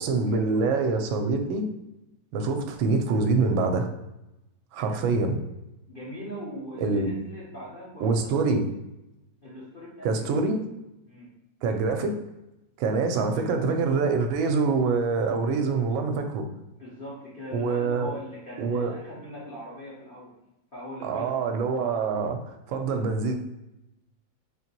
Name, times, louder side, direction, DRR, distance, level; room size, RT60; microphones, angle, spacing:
voice 1, 0.0-1.7 2.3-3.9 4.7-5.4 6.8-7.1 8.0-8.6 10.0-10.6 11.6-12.1 12.8-16.5 17.5-18.1 18.6-18.9 21.0-23.4, right 4 dB, 85° right, 5 dB, 1.3 m, -25 dB
voice 2, 5.9-8.6 9.4-10.5 11.1-11.3 16.8-20.4 20.7-21.3, equal, 70° left, -5 dB, 0.5 m, -40 dB
4.1 x 2.9 x 2.9 m, 0.91 s
omnidirectional pair, 2.1 m